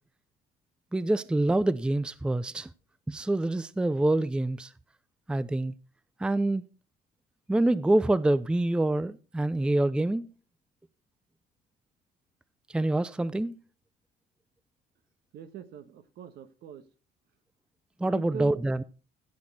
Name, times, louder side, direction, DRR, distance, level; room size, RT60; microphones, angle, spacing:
voice 1, 0.9-2.7 3.1-4.7 5.3-5.7 6.2-6.6 7.5-10.3 12.7-13.6 18.0-18.8, right 1 dB, 5° right, 0.5 m, -26 dB
voice 2, 15.3-16.8 18.0-18.6, right 8 dB, 70° right, 1.3 m, -41 dB
16.0 x 6.4 x 4.1 m
cardioid pair, 110°, 17 cm